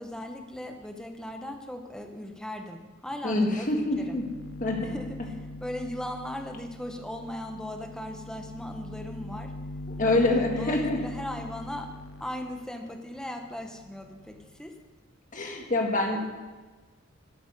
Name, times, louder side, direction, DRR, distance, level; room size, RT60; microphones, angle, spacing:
voice 1, 0.0-4.2 4.8-5.4 5.6-9.5 10.0-11.9 12.2-14.7, left 1 dB, 5° left, 4 dB, 1.0 m, -38 dB
sound 1, 3.1-3.2 3.5-14.6, left 2 dB, 80° left, 0.6 m, -42 dB
voice 2, 3.2-4.3 4.6-4.9 9.9-11.0 15.3-16.3, left 2 dB, 40° left, 2 dB, 1.7 m, -26 dB
12.5 x 8.7 x 5.2 m, 1.3 s
head